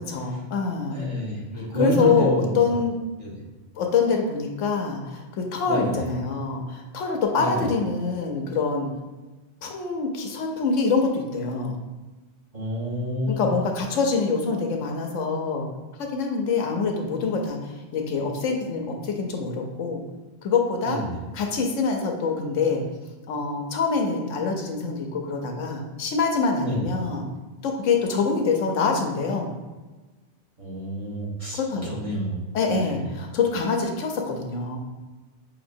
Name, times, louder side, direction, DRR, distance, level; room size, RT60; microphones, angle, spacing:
voice 1, 0.0-1.1 1.5-2.9 3.7-8.9 9.6-11.8 13.3-15.7 16.0-20.0 20.4-21.0 21.3-22.8 23.3-27.3 27.6-29.5 31.6-32.0 32.5-34.8, left 4 dB, 90° left, 3 dB, 1.0 m, -25 dB
voice 2, 0.9-2.6 3.2-3.3 5.6-6.0 7.4-7.6 12.5-13.4 20.8-21.2 26.6-26.8 30.6-32.4 32.7-33.1, equal, 30° right, -7 dB, 1.3 m, -29 dB
5.5 x 2.9 x 2.6 m, 1.2 s
omnidirectional pair, 1.2 m